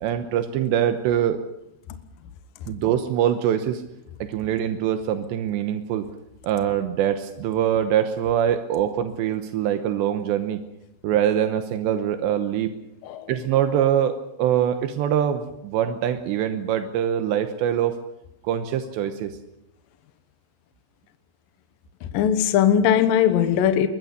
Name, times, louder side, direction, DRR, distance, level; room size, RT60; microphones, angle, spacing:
voice 1, 0.0-1.4 2.7-3.8 4.3-6.0 6.4-10.6 11.0-12.7 13.3-18.0 18.4-19.4, right 10 dB, 80° right, 3.2 m, -23 dB
voice 2, 22.0-23.9, left 9 dB, 65° left, 2.5 m, -20 dB
22.5 x 21.5 x 6.7 m
omnidirectional pair, 5.1 m